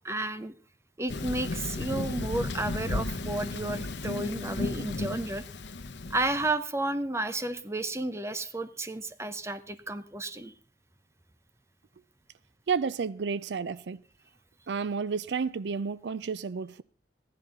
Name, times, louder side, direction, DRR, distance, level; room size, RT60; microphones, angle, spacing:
voice 1, 0.0-0.5 1.0-5.4 6.1-10.5, right 2 dB, 15° right, 0.8 m, -32 dB
Thunder, 1.1-6.5, left 2 dB, 80° left, 1.0 m, -34 dB
voice 2, 12.7-14.0 14.7-16.8, right 5 dB, 75° right, 0.4 m, -31 dB
14.5 x 11.0 x 3.9 m
head